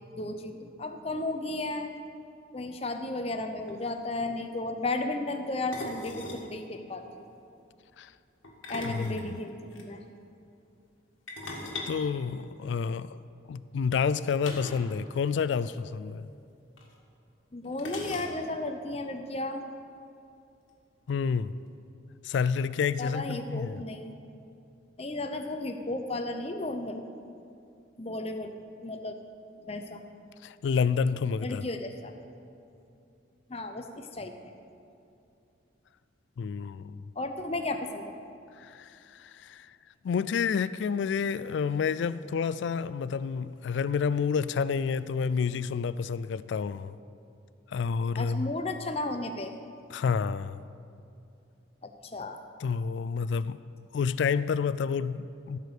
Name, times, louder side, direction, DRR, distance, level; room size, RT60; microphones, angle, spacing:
voice 1, 0.1-2.0 2.5-7.3 8.7-10.0 17.5-19.7 23.0-24.1 25.0-27.0 28.0-28.5 28.8-29.2 29.6-30.0 31.4-32.1 33.5-34.5 37.2-38.1 48.2-49.5 51.8-52.4, left 2 dB, 30° left, 6 dB, 0.7 m, -34 dB
sound 1, 3.4-3.5 3.7-3.9 5.7-6.5 8.4-9.9 11.3-12.9 14.4-14.9 15.2-15.3 15.6-15.8 16.8-16.9 17.8-18.6, left 2 dB, 90° left, 1.5 m, -39 dB
voice 2, 8.8-9.2 11.9-13.2 13.5-16.2 21.1-21.6 22.2-23.8 30.4-31.6 36.4-37.0 38.6-39.7 40.0-47.0 47.7-48.5 49.9-50.6 52.6-53.6 53.9-55.6, left 6 dB, 65° left, 15 dB, 0.3 m, -29 dB
15.0 x 5.0 x 6.5 m, 2.7 s
head